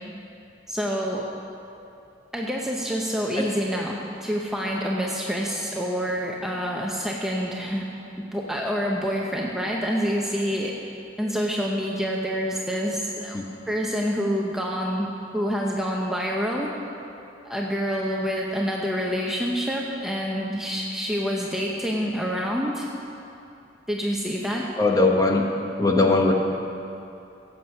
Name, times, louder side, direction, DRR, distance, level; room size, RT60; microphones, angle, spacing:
voice 1, 0.7-1.3 2.3-7.9 8.2-10.7 11.2-13.4 13.7-16.7 17.4-22.9 23.9-24.7, equal, ahead, -2 dB, 0.8 m, -27 dB
voice 2, 24.8-25.5 25.8-26.3, left 2 dB, 20° left, 1 dB, 1.0 m, -19 dB
16.0 x 8.2 x 5.7 m, 2.8 s
head